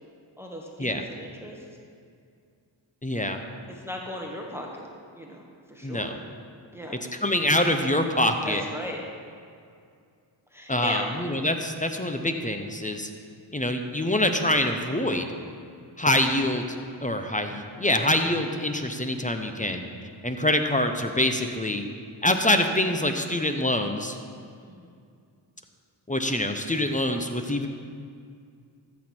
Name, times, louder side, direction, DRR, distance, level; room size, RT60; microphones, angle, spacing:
voice 1, 0.4-1.6 3.7-4.9 5.1-6.2 6.7-7.0 8.4-9.0 10.5-11.1 14.0-14.2 24.6-25.0 27.4-27.6, equal, 5° right, 0 dB, 1.4 m, -37 dB
voice 2, 3.0-3.4 5.8-6.2 7.2-8.6 10.7-13.1 13.5-15.3 16.0-16.8 17.0-19.8 20.2-21.8 22.2-24.2 26.1-27.7, left 1 dB, 15° left, 6 dB, 0.8 m, -25 dB
13.5 x 6.3 x 4.4 m, 2.3 s
cardioid pair, 50°, 47 cm